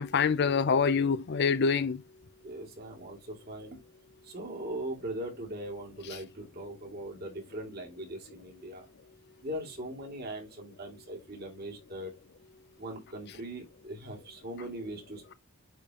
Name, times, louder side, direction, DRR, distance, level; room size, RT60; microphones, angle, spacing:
voice 1, 0.0-2.0, left 5 dB, 50° left, 0.5 m, -26 dB
voice 2, 2.4-3.8 4.2-8.9 9.4-12.1 12.8-15.3, right 1 dB, 50° right, 2.6 m, -40 dB
8.8 x 3.6 x 2.9 m
head